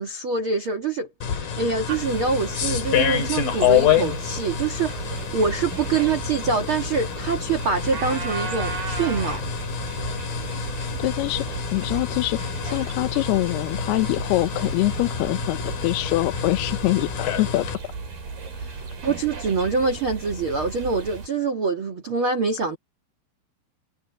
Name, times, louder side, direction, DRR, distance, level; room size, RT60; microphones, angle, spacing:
voice 1, 0.0-9.4 18.6-22.8, right 4 dB, 75° right, 1.2 m, -25 dB
sound 1, 1.2-17.7, left 8 dB, 55° left, 4.5 m, -28 dB
sound 2, 1.9-21.3, right 4 dB, 50° right, 7.7 m, -35 dB
voice 2, 11.0-12.4 12.6-17.7, left 19 dB, 80° left, 2.5 m, -24 dB
omnidirectional pair, 5.2 m